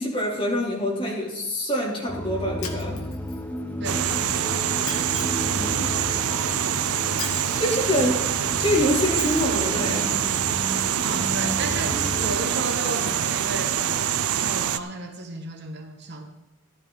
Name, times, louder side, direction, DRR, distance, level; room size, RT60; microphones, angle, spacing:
voice 1, 0.0-3.0 5.4-5.9 7.5-8.3 8.6-10.2, equal, 25° left, -3 dB, 3.2 m, -25 dB
sound 1, 2.1-12.4, equal, 10° left, 0.9 m, -33 dB
Shatter, 2.6-3.6 4.9-5.6 7.2-7.8 9.2-9.7, left 6 dB, 75° left, 1.6 m, -38 dB
voice 2, 3.8-4.6 11.0-16.3, right 2 dB, 50° right, 5 dB, 1.2 m, -34 dB
sound 2, 3.8-14.8, right 9 dB, 90° right, 0.5 m, -25 dB
14.0 x 12.0 x 3.9 m, 0.97 s
head